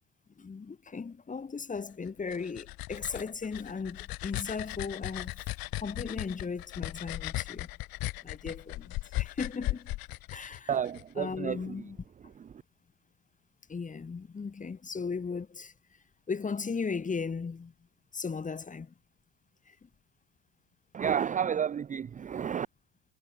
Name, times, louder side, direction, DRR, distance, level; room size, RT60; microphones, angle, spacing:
voice 1, 0.4-5.5 5.8-7.7 8.2-9.9 10.3-10.7 11.2-12.0 13.7-15.7 16.3-17.7 18.1-18.9 19.7-19.9, left 5 dB, 20° left, 3.7 m, -37 dB
sound 1, 2.1-11.0, left 18 dB, 60° left, 6.6 m, -37 dB
voice 2, 10.7-11.8 12.4-12.6 20.9-22.7, right 8 dB, 20° right, 0.7 m, -31 dB
supercardioid pair, 120°, 41 cm